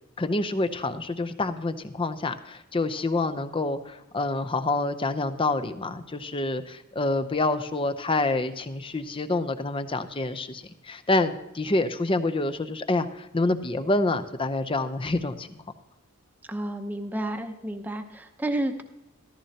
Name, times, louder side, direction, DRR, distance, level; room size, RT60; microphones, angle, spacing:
voice 1, 0.2-15.5, left 2 dB, 25° left, 9 dB, 0.6 m, -27 dB
voice 2, 16.5-18.8, right 1 dB, 10° right, 5 dB, 0.8 m, -31 dB
14.5 x 14.0 x 2.8 m, 0.91 s
head